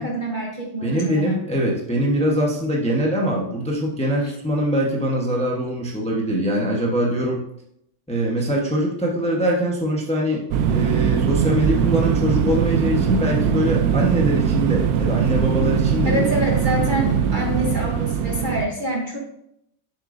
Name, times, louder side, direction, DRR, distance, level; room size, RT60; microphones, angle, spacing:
voice 1, 0.0-1.6 4.2-4.3 8.4-8.5 16.1-19.2, equal, 35° right, -1 dB, 1.0 m, -26 dB
voice 2, 0.8-7.4 8.1-10.4 10.7-16.3, equal, 5° left, -2 dB, 0.9 m, -23 dB
sound 1, 10.5-18.6, right 8 dB, 75° right, 1.0 m, -21 dB
7.1 x 7.0 x 2.6 m, 0.76 s
omnidirectional pair, 1.7 m